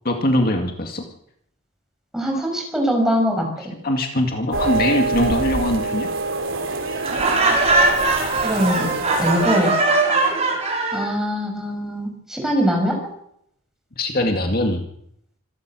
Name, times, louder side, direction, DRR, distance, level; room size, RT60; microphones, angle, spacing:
voice 1, 0.0-1.1 3.8-6.1 14.0-14.8, left 1 dB, 45° left, 3 dB, 2.2 m, -21 dB
voice 2, 2.1-3.5 8.4-8.9 9.2-9.7 10.9-13.0, equal, ahead, 1 dB, 6.1 m, -22 dB
sound 1, 4.5-9.9, right 3 dB, 65° right, 3.8 m, -26 dB
Laughter, 7.0-11.1, right 3 dB, 30° right, 5.9 m, -20 dB
26.0 x 13.5 x 7.7 m, 0.73 s
head